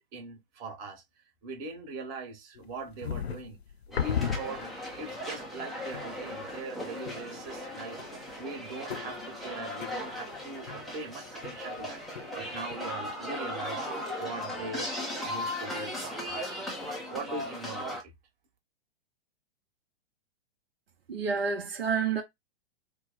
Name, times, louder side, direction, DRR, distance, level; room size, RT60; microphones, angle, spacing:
voice 1, 0.1-1.0 1.4-3.6 3.9-8.0 8.4-12.0 12.3-14.9 15.2-16.6 17.1-18.1, right 3 dB, 35° right, 1.1 m, -41 dB
sound 1, 2.6-5.1 5.5-5.6 5.9-6.4 7.0-7.7 8.0-11.8 12.1-12.8, left 7 dB, 80° left, 0.6 m, -37 dB
sound 2, 3.9-18.0, left 1 dB, ahead, 0.3 m, -37 dB
voice 2, 21.1-22.2, right 5 dB, 70° right, 0.8 m, -29 dB
3.1 x 2.0 x 3.8 m
figure-of-eight pair, 110°, 31 cm